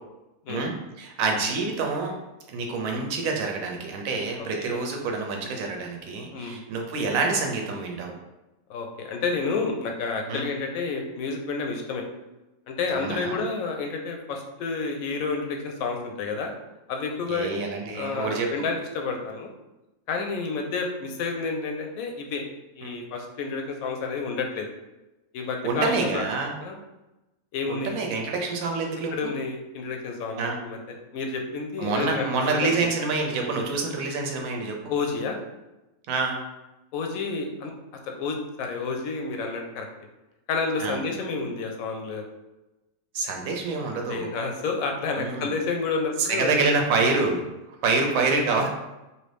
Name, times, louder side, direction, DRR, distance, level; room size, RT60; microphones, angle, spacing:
voice 1, 0.5-2.1 2.5-8.1 10.3-10.5 12.9-13.4 17.3-18.5 22.8-22.9 25.6-26.5 27.7-29.3 30.4-30.6 31.8-34.8 36.1-36.4 40.8-41.0 43.1-44.3 45.2-45.5 46.2-47.5 47.8-48.7, right 3 dB, 70° right, 2 dB, 1.0 m, -27 dB
voice 2, 4.4-4.8 6.3-6.6 8.7-12.0 12.7-16.5 16.9-17.5 17.9-19.5 20.1-22.4 22.7-24.7 25.3-26.2 26.6-26.8 27.5-28.0 29.1-30.8 31.1-32.9 34.9-35.4 36.9-37.7 38.1-39.9 40.5-42.2 44.1-46.5, left 4 dB, 75° left, 3 dB, 1.0 m, -30 dB
3.1 x 2.6 x 3.2 m, 1.0 s
omnidirectional pair, 1.6 m